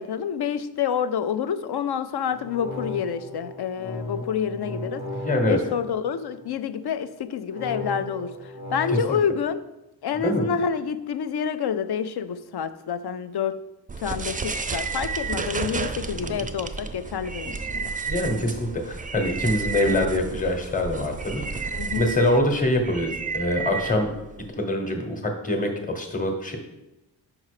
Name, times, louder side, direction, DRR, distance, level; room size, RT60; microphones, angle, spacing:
voice 1, 0.0-5.0 5.5-9.6 10.0-13.6 14.0-17.9 21.7-22.2, left 7 dB, 65° left, 12 dB, 0.5 m, -28 dB
sound 1, 2.3-6.6 7.5-9.3, left 1 dB, 40° left, 0.9 m, -36 dB
voice 2, 5.2-5.6 9.1-9.2 10.1-10.4 16.3-16.4 18.1-24.1 24.5-26.6, left 1 dB, 20° left, 4 dB, 1.0 m, -24 dB
sound 2, 13.9-24.5, right 5 dB, 20° right, 0.3 m, -32 dB
5.4 x 4.9 x 4.8 m, 0.96 s
wide cardioid pair, 100°, 42 cm